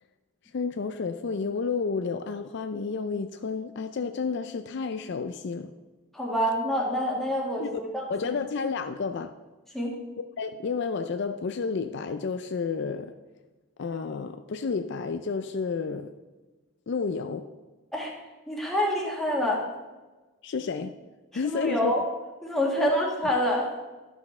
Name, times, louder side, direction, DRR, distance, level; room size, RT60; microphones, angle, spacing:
voice 1, 0.5-5.7 7.6-7.7 8.1-9.3 10.4-13.1 13.8-16.1 16.9-17.5 20.4-21.0 21.3-21.9 22.8-22.9, left 5 dB, 50° left, 8 dB, 0.4 m, -31 dB
voice 2, 6.1-8.1 9.7-9.9 17.9-18.1 18.5-19.7 21.4-22.0 22.4-23.7, equal, ahead, -3 dB, 1.6 m, -27 dB
12.0 x 6.0 x 4.3 m, 1.2 s
head